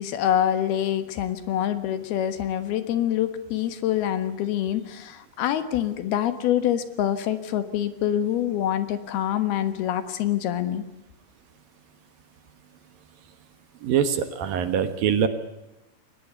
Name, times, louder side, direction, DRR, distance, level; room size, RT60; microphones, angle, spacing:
voice 1, 0.0-10.8, left 11 dB, 70° left, 11 dB, 3.1 m, -25 dB
voice 2, 13.8-15.3, right 8 dB, 65° right, 10 dB, 2.8 m, -23 dB
22.0 x 19.5 x 8.1 m, 0.94 s
omnidirectional pair, 4.9 m